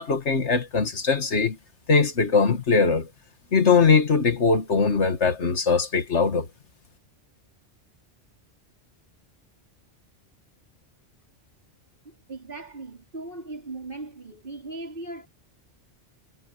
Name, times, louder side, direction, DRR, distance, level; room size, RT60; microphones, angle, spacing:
voice 1, 0.0-1.6 1.9-3.1 3.5-6.5, left 5 dB, 85° left, 2.2 m, -21 dB
voice 2, 12.0-15.3, right 2 dB, 50° right, 4.2 m, -38 dB
omnidirectional pair, 1.1 m